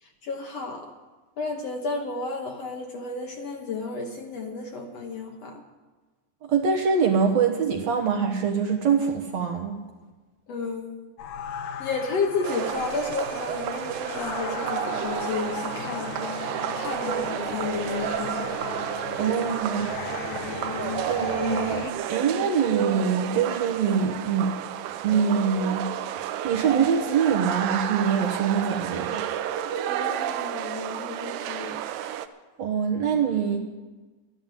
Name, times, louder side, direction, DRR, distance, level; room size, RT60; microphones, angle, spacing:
voice 1, 0.0-0.9 1.4-5.6 10.5-10.9 11.8-18.5 29.9-31.8, left 3 dB, 60° left, 2 dB, 1.9 m, -32 dB
voice 2, 6.4-9.8 19.2-20.3 21.1-21.8 22.1-24.5 25.0-25.9 26.2-29.2 32.6-33.6, right 6 dB, 60° right, 2 dB, 2.1 m, -24 dB
sound 1, 11.2-21.9, left 9 dB, 80° left, 2.2 m, -36 dB
sound 2, 12.4-32.3, right 11 dB, 85° right, 2.3 m, -31 dB
13.0 x 11.0 x 7.6 m, 1.3 s
omnidirectional pair, 3.9 m